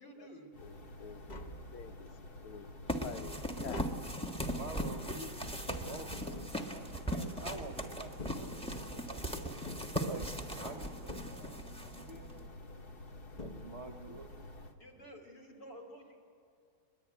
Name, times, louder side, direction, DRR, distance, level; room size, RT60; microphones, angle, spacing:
voice 1, 0.0-0.5 14.8-16.2, equal, 55° left, 2 dB, 3.4 m, -51 dB
sound 1, 0.5-14.7, left 2 dB, 40° left, 0.9 m, -50 dB
voice 2, 0.6-2.1 2.4-2.7 3.0-3.9, left 8 dB, 90° left, 9 dB, 1.9 m, -48 dB
Tap, 1.1-2.2 2.7-7.4 8.0-9.1 9.7-10.6 11.1-11.9 12.9-13.0 13.4-14.2 14.5-14.6, left 2 dB, 70° left, 0.4 m, -49 dB
sound 2, 2.9-12.4, equal, 5° left, 0.9 m, -39 dB
voice 3, 4.4-5.3 5.7-9.2 9.7-11.6 11.9-12.5 13.4-14.3, right 3 dB, 50° right, 5 dB, 0.9 m, -48 dB
23.0 x 21.0 x 9.3 m, 2.5 s
omnidirectional pair, 2.3 m